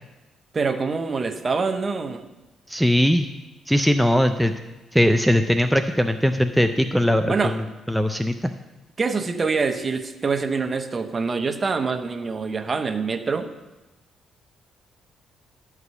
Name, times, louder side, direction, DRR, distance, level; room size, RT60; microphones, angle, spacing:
voice 1, 0.5-2.2 7.3-7.6 9.0-13.5, right 4 dB, 35° right, 8 dB, 0.8 m, -25 dB
voice 2, 2.7-3.3 3.7-4.5 4.9-7.5 7.9-8.5, equal, ahead, 6 dB, 0.4 m, -20 dB
11.0 x 4.9 x 6.7 m, 1.1 s
cardioid pair, 90°, 0 cm